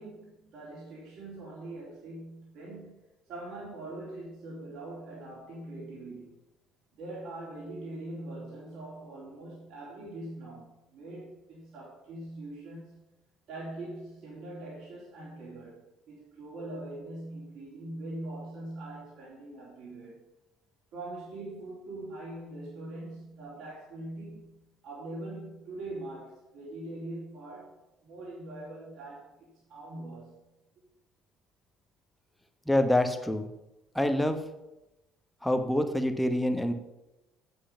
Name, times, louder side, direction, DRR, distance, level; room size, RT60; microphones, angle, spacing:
voice 1, 0.0-3.0 3.3-6.4 7.0-13.1 13.5-20.3 20.9-30.5, right 2 dB, 55° right, -6 dB, 3.8 m, -42 dB
voice 2, 32.7-33.5 33.9-34.4 35.4-36.7, left 1 dB, 5° left, 6 dB, 1.2 m, -26 dB
8.3 x 8.0 x 5.7 m, 0.95 s
figure-of-eight pair, 55°, 0 cm